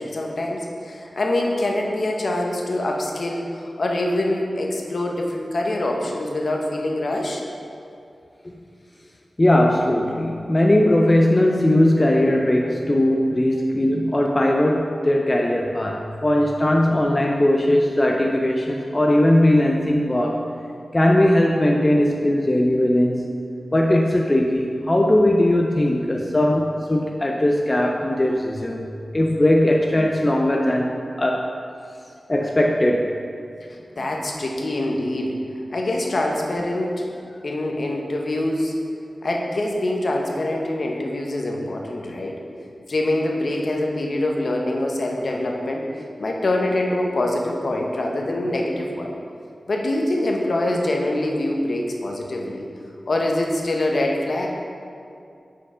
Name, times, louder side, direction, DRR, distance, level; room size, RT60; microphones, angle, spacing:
voice 1, 0.0-7.4 33.7-35.4 35.7-37.1 37.4-38.7 39.2-42.4 42.9-45.8 46.2-49.1 49.7-52.7 53.1-54.5, left 1 dB, 60° left, 0 dB, 0.8 m, -24 dB
voice 2, 9.4-20.4 20.9-23.4 23.7-28.9 29.1-31.5 32.3-33.2, left 1 dB, 25° left, 0 dB, 0.4 m, -19 dB
7.3 x 4.4 x 3.7 m, 2.4 s
wide cardioid pair, 80°, 0 cm